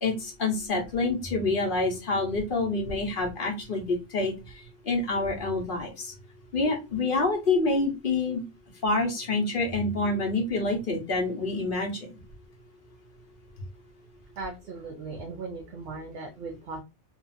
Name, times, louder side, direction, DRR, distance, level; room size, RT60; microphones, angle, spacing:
voice 1, 0.0-4.3 4.8-6.1 6.5-8.4 8.8-11.9, left 3 dB, 50° left, 1 dB, 1.0 m, -27 dB
voice 2, 14.4-16.8, right 3 dB, 70° right, 2 dB, 0.9 m, -38 dB
2.8 x 2.5 x 2.4 m, 0.26 s
omnidirectional pair, 1.2 m